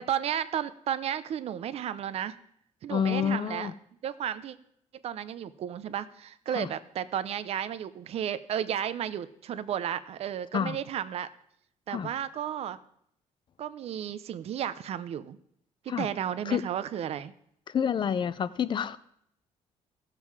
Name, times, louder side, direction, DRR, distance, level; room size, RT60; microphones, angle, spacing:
voice 1, 0.0-2.4 2.8-3.7 4.0-4.6 5.0-11.3 11.9-12.8 13.6-15.4 15.8-17.3, right 10 dB, 55° right, 15 dB, 0.6 m, -33 dB
voice 2, 2.9-3.7 6.5-6.7 10.5-10.8 11.9-12.1 15.9-16.1 16.5-16.7 17.7-19.0, left 8 dB, 40° left, 15 dB, 0.5 m, -28 dB
17.0 x 7.5 x 4.8 m, 0.71 s
cardioid pair, 140°, 13 cm